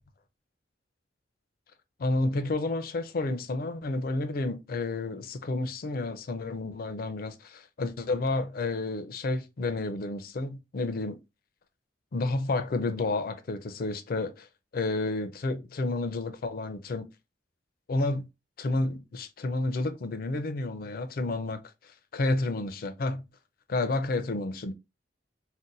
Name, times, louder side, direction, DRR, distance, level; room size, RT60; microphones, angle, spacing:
voice 1, 2.0-11.2 12.1-14.5 14.7-17.1 17.9-18.3 18.6-23.3 23.7-24.7, left 2 dB, 50° left, 0.4 m, -30 dB
2.6 x 2.1 x 3.9 m
head